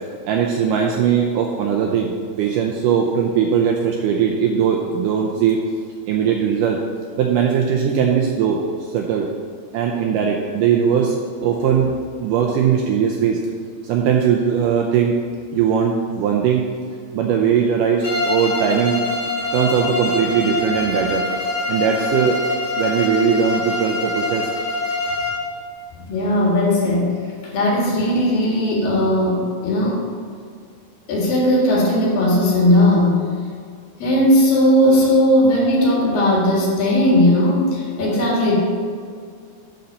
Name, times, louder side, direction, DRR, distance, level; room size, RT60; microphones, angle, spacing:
voice 1, 0.3-5.6 6.1-6.8 7.2-9.3 9.7-11.9 12.2-13.4 13.8-15.2 15.5-16.6 17.1-19.0 19.5-21.3 21.7-22.4 22.8-24.5, right 7 dB, 80° right, 1 dB, 1.9 m, -19 dB
Bowed string instrument, 18.0-25.5, left 2 dB, 25° left, 2.1 m, -24 dB
voice 2, 26.1-27.2 27.5-30.0 31.1-33.2 34.0-38.6, left 1 dB, 70° left, -4 dB, 3.6 m, -17 dB
11.5 x 4.1 x 5.6 m, 2.1 s
omnidirectional pair, 4.3 m